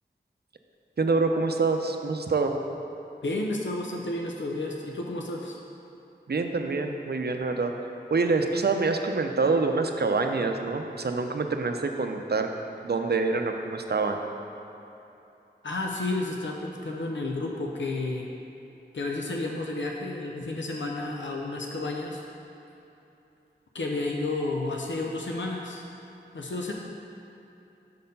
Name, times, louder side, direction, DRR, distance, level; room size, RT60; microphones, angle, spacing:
voice 1, 1.0-2.5 6.3-7.7 8.1-12.5 12.8-14.2, right 3 dB, 60° right, 5 dB, 0.5 m, -26 dB
voice 2, 3.2-5.6 15.6-18.3 18.9-22.2 23.7-25.8 26.3-26.7, left 2 dB, 90° left, 0 dB, 0.5 m, -31 dB
6.6 x 4.2 x 5.4 m, 2.8 s
wide cardioid pair, 40°, 19 cm